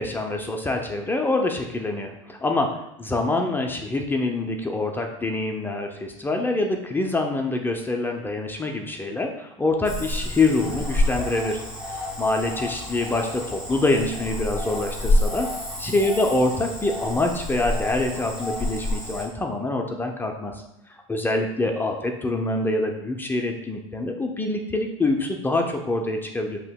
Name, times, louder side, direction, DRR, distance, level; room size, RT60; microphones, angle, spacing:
voice 1, 0.0-11.6 11.9-15.5 15.8-20.6 21.1-26.6, left 2 dB, 10° left, 3 dB, 0.5 m, -25 dB
Cricket / Frog, 9.8-19.3, left 1 dB, 5° right, 1.2 m, -28 dB
7.7 x 2.8 x 2.2 m, 0.87 s
supercardioid pair, 110°, 16 cm